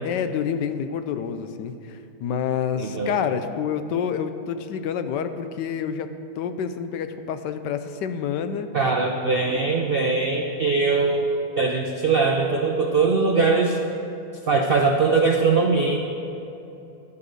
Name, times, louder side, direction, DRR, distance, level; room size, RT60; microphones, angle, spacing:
voice 1, 0.0-8.7 9.4-9.7, left 7 dB, 85° left, 9 dB, 1.3 m, -28 dB
voice 2, 2.8-3.2 8.7-11.3 11.6-13.8 14.5-16.0, right 4 dB, 70° right, 2 dB, 0.5 m, -21 dB
12.0 x 5.7 x 7.7 m, 2.9 s
omnidirectional pair, 1.8 m